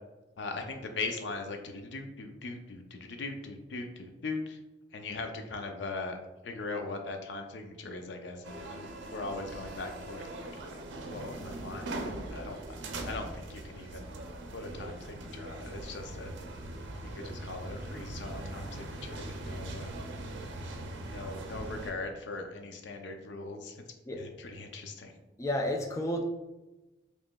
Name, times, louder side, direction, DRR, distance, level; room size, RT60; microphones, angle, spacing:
voice 1, 0.4-4.6 4.9-10.8 11.1-12.6 13.0-14.1 14.5-16.3 17.0-19.9 21.0-23.8 24.2-25.1, left 3 dB, 80° left, 5 dB, 0.5 m, -40 dB
sound 1, 8.4-21.9, right 1 dB, 90° right, 0.5 m, -41 dB
voice 2, 25.4-26.2, left 1 dB, 15° left, 2 dB, 0.3 m, -31 dB
5.0 x 3.0 x 2.2 m, 1.1 s
head